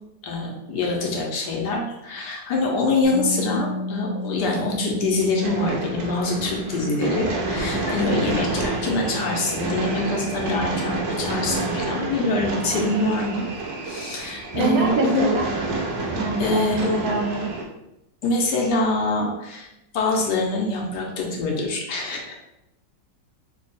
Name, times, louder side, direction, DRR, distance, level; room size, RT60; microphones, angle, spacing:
voice 1, 0.2-13.5 13.8-15.3 16.4-17.1 18.2-19.7 19.9-22.3, left 2 dB, 75° left, -1 dB, 1.2 m, -25 dB
sound 1, 3.0-12.8, left 2 dB, 10° left, 0.7 m, -35 dB
sound 2, 5.4-17.6, right 2 dB, 85° right, 1.4 m, -29 dB
voice 2, 14.6-15.5 16.1-17.5, right 3 dB, 65° right, 0 dB, 1.0 m, -24 dB
3.4 x 2.3 x 3.9 m, 0.89 s
omnidirectional pair, 1.9 m